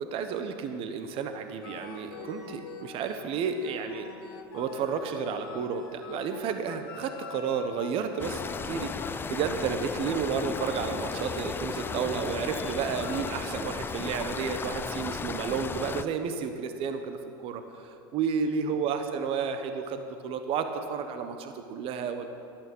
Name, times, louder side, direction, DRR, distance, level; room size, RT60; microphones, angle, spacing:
voice 1, 0.0-4.1 4.5-22.3, right 6 dB, 50° right, 8 dB, 1.0 m, -32 dB
sound 1, 1.6-13.4, left 6 dB, 75° left, 1.9 m, -45 dB
sound 2, 8.2-16.0, left 5 dB, 15° left, 0.4 m, -35 dB
12.5 x 11.5 x 5.4 m, 2.6 s
hypercardioid pair, 95°, 13 cm